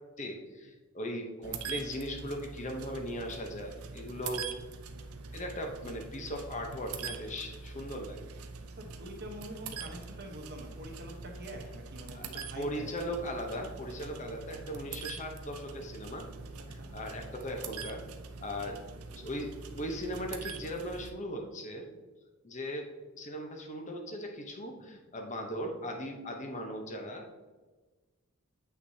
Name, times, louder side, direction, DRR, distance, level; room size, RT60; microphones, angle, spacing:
voice 1, 0.2-4.5 5.3-8.2 12.1-16.3 16.7-18.0 18.4-18.8 19.1-21.9 22.4-27.2, equal, 35° left, 2 dB, 0.9 m, -38 dB
sound 1, 1.4-21.1, right 5 dB, 80° right, 0.6 m, -44 dB
voice 2, 8.8-12.9 16.6-16.9, equal, 45° right, 2 dB, 1.1 m, -45 dB
7.9 x 5.9 x 2.8 m, 1.3 s
head